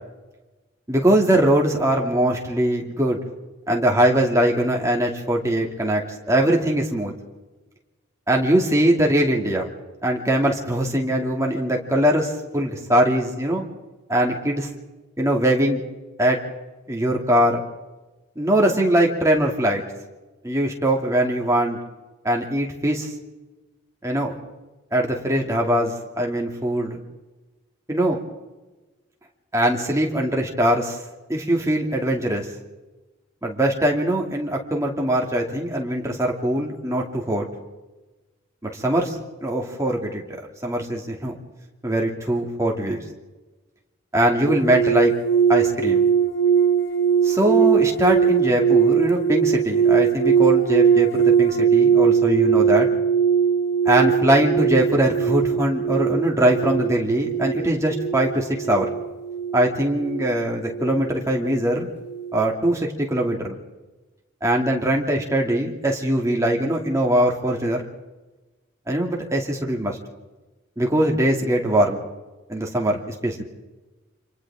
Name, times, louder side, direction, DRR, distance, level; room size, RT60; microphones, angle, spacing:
voice 1, 0.9-3.2 3.7-6.0 6.3-7.1 8.3-9.7 10.0-13.6 14.1-14.7 15.2-15.8 16.2-16.4 16.9-17.6 18.4-19.8 20.4-21.8 22.2-23.1 24.0-24.3 24.9-27.0 27.9-28.2 29.5-31.0 31.3-32.5 33.4-37.5 38.6-39.2 39.4-40.2 40.6-41.4 41.8-43.0 44.1-45.1 45.5-46.0 47.2-52.9 53.8-58.9 59.5-61.9 62.3-63.6 64.4-67.8 68.9-70.0 70.8-72.0 72.5-73.4, right 1 dB, 15° right, 0 dB, 2.6 m, -21 dB
sound 1, 44.5-61.8 62.0-62.4, right 7 dB, 50° left, 1.4 m, -20 dB
29.5 x 27.0 x 3.7 m, 1.2 s
head